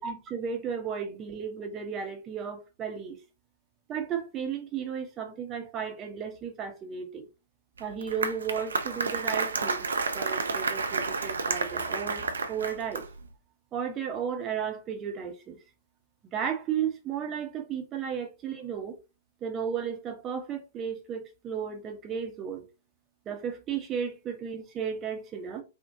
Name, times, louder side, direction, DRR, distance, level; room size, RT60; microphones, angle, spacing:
voice 1, 0.0-3.2 3.9-7.2 7.8-9.9 10.1-13.1 13.7-15.6 16.3-19.0 19.4-22.6 23.3-25.6, right 7 dB, 25° right, 0.6 m, -34 dB
Applause, 7.8-13.3, right 4 dB, 70° right, 0.3 m, -31 dB
3.0 x 2.1 x 2.6 m
figure-of-eight pair, 105°, 0 cm